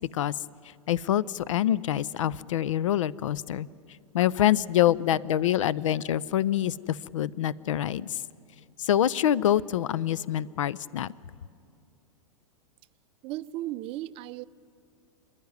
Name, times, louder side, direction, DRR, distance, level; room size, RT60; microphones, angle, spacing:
voice 1, 0.9-3.7 4.1-8.2 8.8-11.1, left 11 dB, 65° left, 20 dB, 0.6 m, -26 dB
voice 2, 13.2-14.5, right 15 dB, 35° right, 16 dB, 0.5 m, -35 dB
28.0 x 10.5 x 9.6 m, 2.4 s
figure-of-eight pair, 100°, 18 cm